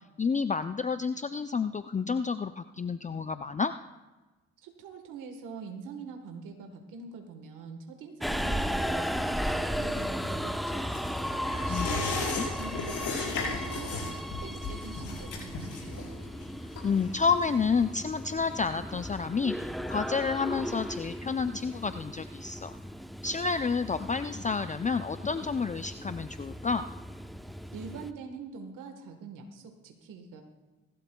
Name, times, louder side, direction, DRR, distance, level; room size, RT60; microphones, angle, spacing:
voice 1, 0.2-3.7 11.7-11.9 12.3-12.5 16.8-22.7 23.2-26.8, left 5 dB, 25° left, 10 dB, 0.5 m, -30 dB
voice 2, 4.6-16.1 27.7-30.4, right 5 dB, 85° right, 4 dB, 1.4 m, -44 dB
Subway metro underground, 8.2-28.1, equal, ahead, 0.8 m, -36 dB
sound 1, 10.9-17.9 18.3-18.4, left 4 dB, 75° left, 5.1 m, -36 dB
23.0 x 12.5 x 2.3 m, 1.2 s
supercardioid pair, 55°, 31 cm